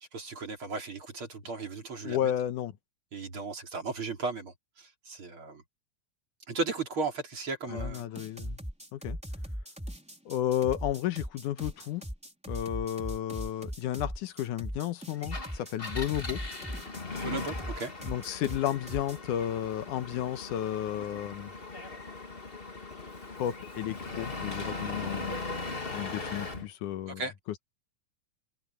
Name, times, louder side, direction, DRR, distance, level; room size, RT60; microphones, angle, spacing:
voice 1, 0.1-2.3 3.1-5.6 6.5-8.1 17.2-17.9 27.1-27.3, right 4 dB, 40° right, 4.0 m, -36 dB
voice 2, 2.0-2.7 7.7-8.6 8.9-9.2 10.3-12.0 12.5-16.4 18.0-21.5 23.4-25.4 25.9-27.2, left 11 dB, 80° left, 2.4 m, -32 dB
sound 1, 7.8-19.2, equal, ahead, 3.6 m, -39 dB
Engine, 15.2-26.7, left 3 dB, 20° left, 1.8 m, -39 dB
omnidirectional pair, 3.7 m